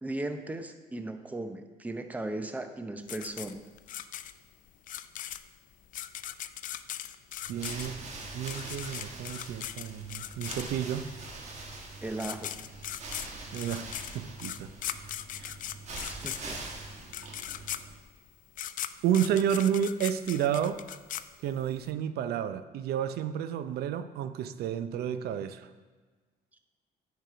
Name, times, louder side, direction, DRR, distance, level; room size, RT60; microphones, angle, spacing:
voice 1, 0.0-3.6 12.0-12.6 16.0-16.6, right 2 dB, 10° right, 7 dB, 0.6 m, -37 dB
sound 1, 3.1-11.0 11.9-12.0 12.2-21.8, left 11 dB, 50° left, 0.4 m, -39 dB
sound 2, 7.4-18.1, right 2 dB, 40° right, 1.5 m, -43 dB
voice 2, 7.5-8.0 8.3-11.1 13.5-13.9 14.1-14.7 15.4-15.5 19.0-20.8 21.4-25.7, right 9 dB, 70° right, 11 dB, 0.6 m, -30 dB
9.1 x 4.8 x 5.6 m, 1.4 s
cardioid pair, 110°, 17 cm